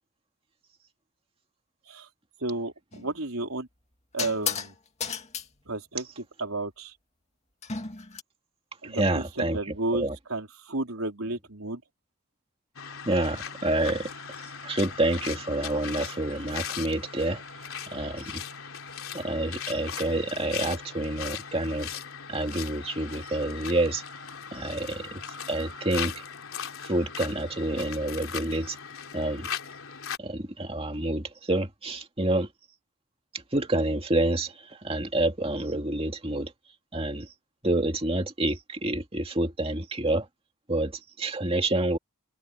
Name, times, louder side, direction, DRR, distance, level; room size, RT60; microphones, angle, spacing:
voice 1, 2.4-3.7 4.1-4.7 5.7-6.9 8.8-11.8, right 2 dB, 70° right, 3.9 m, -32 dB
sound 1, 2.9-3.1 4.2-4.7 5.0-5.5 7.6-8.2, left 6 dB, 30° left, 2.2 m, -33 dB
voice 2, 8.8-10.2 13.1-14.1 14.6-17.4 17.9-18.4 19.1-22.0 22.3-24.0 24.5-25.2 25.5-26.1 26.8-28.8 29.1-29.5 30.2-32.5 33.3-36.5 36.9-37.3 37.6-40.3 40.7-42.0, right 1 dB, 25° right, 2.4 m, -28 dB
sound 2, 12.8-30.2, left 7 dB, 70° left, 3.5 m, -38 dB
head